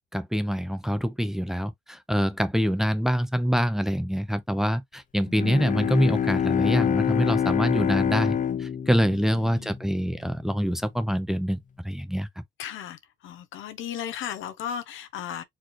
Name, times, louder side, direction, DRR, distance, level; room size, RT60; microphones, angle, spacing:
voice 1, 0.1-12.4, equal, ahead, 0.7 m, -25 dB
Bowed string instrument, 5.3-10.1, left 8 dB, 40° left, 0.5 m, -26 dB
voice 2, 9.1-9.7 12.6-15.4, left 9 dB, 80° left, 0.8 m, -36 dB
4.4 x 2.9 x 3.0 m
cardioid pair, 90°, 20 cm